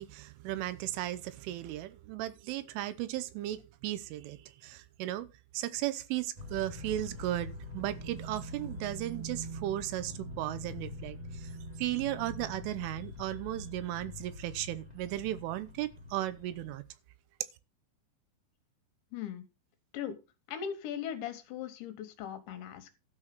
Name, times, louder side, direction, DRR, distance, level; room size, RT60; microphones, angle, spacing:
voice 1, 0.0-5.3 5.5-11.5 11.8-16.8, right 14 dB, 80° right, 3.3 m, -36 dB
sound 1, 6.4-16.7, left 1 dB, 25° right, 0.8 m, -44 dB
voice 2, 19.1-19.4 19.9-20.2 20.5-22.9, left 9 dB, 70° left, 3.3 m, -39 dB
12.5 x 6.4 x 6.0 m
omnidirectional pair, 5.7 m